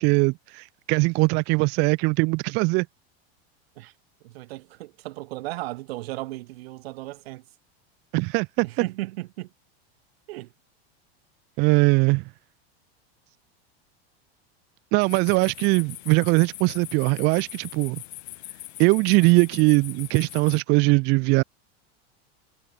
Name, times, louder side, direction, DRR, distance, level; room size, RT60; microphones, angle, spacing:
voice 1, 0.0-2.9 8.1-8.9 11.6-12.3 14.9-18.0 18.8-21.4, right 27 dB, 35° right, 0.5 m, -21 dB
voice 2, 4.2-7.4 8.6-9.5 10.3-10.5, right 19 dB, 70° right, 3.5 m, -35 dB
sound 1, 15.0-20.6, left 16 dB, 80° left, 3.0 m, -41 dB
supercardioid pair, 155°, 32 cm